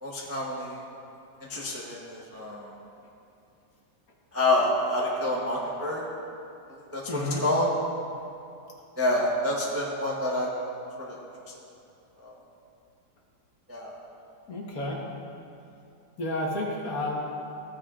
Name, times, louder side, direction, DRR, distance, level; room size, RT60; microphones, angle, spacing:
voice 1, 0.0-0.8 1.5-2.7 4.3-6.1 6.7-7.7 9.0-10.5 11.0-11.2 12.2-12.3 13.7-14.0, left 1 dB, 10° right, -3 dB, 0.7 m, -28 dB
voice 2, 7.1-7.4 14.5-15.0 16.2-17.2, left 1 dB, 55° left, -2 dB, 1.6 m, -31 dB
15.5 x 9.1 x 2.4 m, 2.7 s
omnidirectional pair, 1.9 m